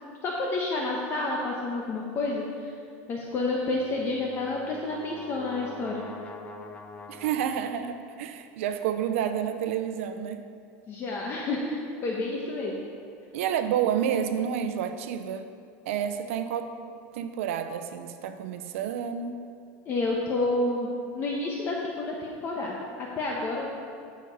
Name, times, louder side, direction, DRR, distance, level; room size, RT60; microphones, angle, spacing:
voice 1, 0.2-2.7 3.1-6.1 10.9-12.7 19.9-23.7, left 2 dB, 35° left, -2 dB, 1.1 m, -29 dB
Brass instrument, 3.7-8.0, left 2 dB, 20° left, 0.6 m, -45 dB
voice 2, 7.1-10.5 13.3-15.5 15.9-16.7 17.1-19.3, right 9 dB, 85° right, 9 dB, 0.7 m, -29 dB
13.0 x 5.3 x 5.3 m, 2.3 s
supercardioid pair, 145°, 7 cm